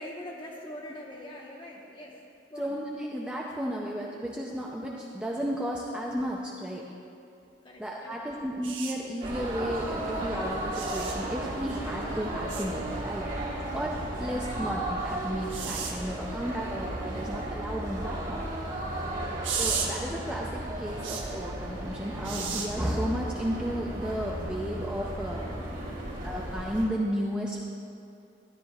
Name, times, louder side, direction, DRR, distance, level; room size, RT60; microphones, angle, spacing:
voice 1, 0.0-2.2 2.5-2.8 7.6-8.5 14.4-14.7 25.3-26.3, left 1 dB, 25° left, -2 dB, 1.1 m, -44 dB
voice 2, 2.6-6.9 7.8-13.4 13.7-18.4 19.6-25.4 26.2-27.7, equal, 5° right, -3 dB, 0.5 m, -33 dB
sound 1, 8.6-8.9 10.7-11.2 12.5-12.7 15.5-15.9 19.4-19.9 21.0-21.2 22.2-22.7 24.1-24.3, right 6 dB, 90° right, 1.1 m, -33 dB
sound 2, 9.2-26.8, right 1 dB, 45° right, 2.0 m, -35 dB
13.0 x 10.5 x 2.4 m, 2.6 s
head